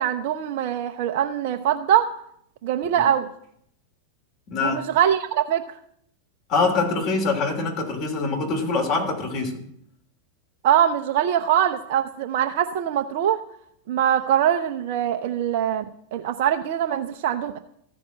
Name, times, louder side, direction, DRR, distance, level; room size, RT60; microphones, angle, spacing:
voice 1, 0.0-2.1 2.6-3.3 4.6-5.7 10.6-13.4 13.9-15.8 16.1-17.6, right 10 dB, 50° right, 5 dB, 0.6 m, -22 dB
voice 2, 4.5-4.8 6.5-9.6, left 3 dB, 40° left, 2 dB, 3.2 m, -24 dB
14.5 x 5.2 x 7.8 m, 0.71 s
figure-of-eight pair, 90°, 0 cm